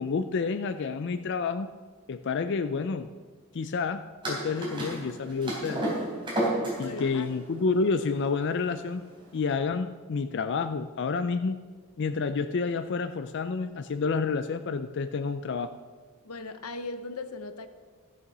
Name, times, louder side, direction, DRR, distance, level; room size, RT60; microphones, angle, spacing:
voice 1, 0.0-1.7 2.1-3.1 3.5-5.8 6.8-9.0 9.3-11.6 12.0-15.7, left 4 dB, 50° left, 9 dB, 0.4 m, -29 dB
sound 1, 4.2-9.4, right 1 dB, 20° right, 3.6 m, -32 dB
voice 2, 6.8-7.3 16.2-17.7, left 3 dB, 90° left, 10 dB, 0.9 m, -38 dB
13.5 x 6.8 x 6.1 m, 1.4 s
head